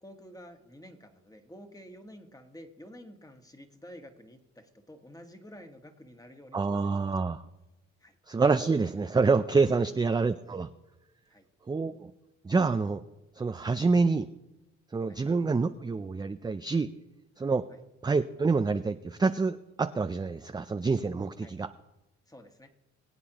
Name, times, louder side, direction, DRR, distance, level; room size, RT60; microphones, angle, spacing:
voice 1, 0.0-6.9 8.0-8.2 9.8-9.9 11.3-11.5 15.1-15.2 17.7-17.8 21.4-21.6 22.3-22.7, equal, 10° left, 5 dB, 1.5 m, -50 dB
voice 2, 6.5-7.4 8.3-10.7 11.7-12.1 12.4-13.0 13.4-14.3 14.9-16.9 17.4-17.6 18.0-21.7, right 4 dB, 15° right, 9 dB, 0.4 m, -27 dB
22.0 x 8.4 x 3.0 m, 0.99 s
cardioid pair, 90°, 30 cm